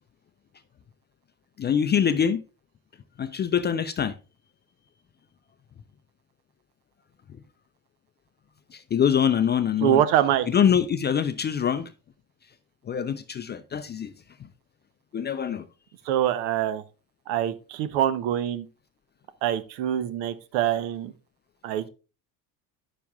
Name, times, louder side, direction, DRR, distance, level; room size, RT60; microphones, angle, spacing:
voice 1, 1.6-2.4 3.2-4.1 8.7-10.0 10.5-11.9 12.9-14.1 14.4-14.5 15.1-15.7, left 8 dB, 20° left, 0.5 m, -24 dB
voice 2, 9.8-10.5 16.1-16.8 17.3-18.6 19.4-21.1 21.6-21.9, right 11 dB, 60° right, 1.0 m, -24 dB
11.0 x 6.9 x 2.4 m
hypercardioid pair, 70°, 50 cm